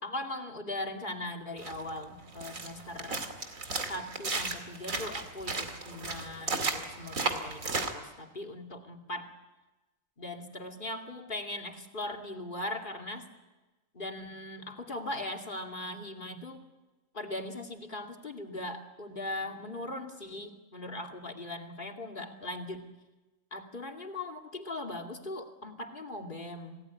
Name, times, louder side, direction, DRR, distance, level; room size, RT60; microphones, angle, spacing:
voice 1, 0.0-3.3 3.8-9.3 10.2-13.3 13.9-16.6 17.1-22.8 23.5-26.8, left 1 dB, 40° left, 3 dB, 2.7 m, -39 dB
sound 1, 1.6-7.9, right 3 dB, 80° right, 2.8 m, -35 dB
27.5 x 18.5 x 9.7 m, 1.1 s
omnidirectional pair, 1.4 m